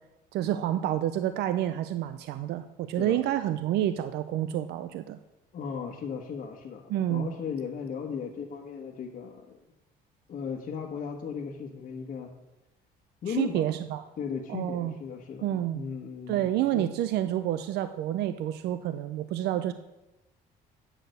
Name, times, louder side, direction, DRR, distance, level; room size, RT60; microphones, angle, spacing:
voice 1, 0.3-5.2 6.9-7.3 13.4-14.0 14.5-14.9 15.4-15.8 16.3-19.7, right 12 dB, 75° right, 11 dB, 0.5 m, -29 dB
voice 2, 5.5-9.6 10.3-12.3 13.2-13.7 14.2-16.5 16.7-16.9, left 6 dB, 50° left, 0 dB, 1.3 m, -36 dB
8.9 x 6.3 x 6.6 m, 0.99 s
cardioid pair, 110°, 17 cm